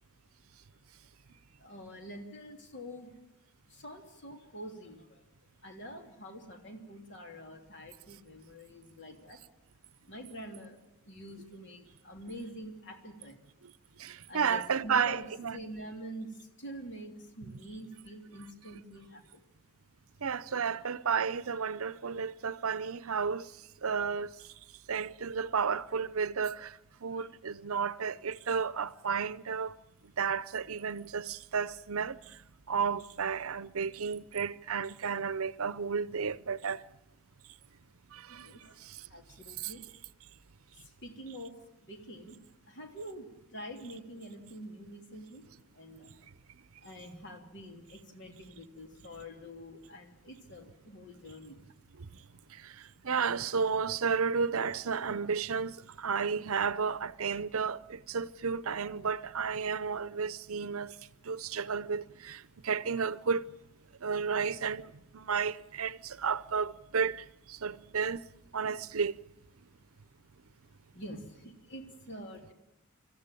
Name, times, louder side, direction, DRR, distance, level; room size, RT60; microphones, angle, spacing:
voice 1, 1.6-3.1 3.7-5.3 5.6-9.4 10.1-10.8 11.0-13.4 14.3-19.4 20.5-20.6 27.1-27.3 38.3-38.8 39.1-39.9 40.8-42.4 42.7-45.4 45.7-46.1 46.8-51.7 70.7-72.5, equal, 55° left, 3.2 m, -46 dB
voice 2, 14.0-15.6 20.2-23.5 23.8-24.3 24.9-29.7 30.0-32.4 32.7-36.8 38.1-39.0 39.6-39.7 52.0-52.1 52.5-61.0 61.2-63.5 64.0-68.2 68.5-69.2, right 6 dB, 70° right, 0.7 m, -32 dB
25.5 x 14.5 x 9.1 m
head